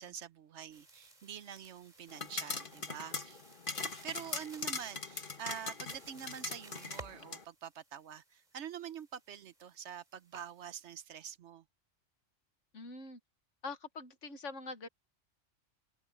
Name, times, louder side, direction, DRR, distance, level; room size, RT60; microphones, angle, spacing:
voice 1, 0.0-3.4 3.8-11.6, right 9 dB, 70° right, 1.0 m, -46 dB
sound 1, 0.7-11.0, right 2 dB, 35° right, 3.1 m, -57 dB
sound 2, 2.1-7.4, left 4 dB, 45° left, 1.8 m, -41 dB
voice 2, 12.7-13.2 13.6-14.9, left 3 dB, 75° left, 1.8 m, -44 dB
open air
omnidirectional pair, 1.3 m